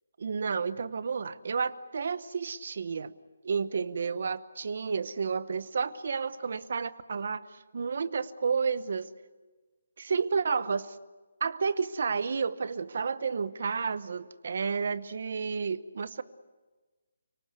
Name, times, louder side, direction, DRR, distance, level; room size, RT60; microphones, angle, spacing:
voice 1, 0.2-3.1 3.4-9.1 10.0-11.0 11.4-16.2, right 5 dB, 45° right, 15 dB, 0.9 m, -31 dB
30.0 x 18.5 x 8.1 m, 1.3 s
hypercardioid pair, 180°, 0 cm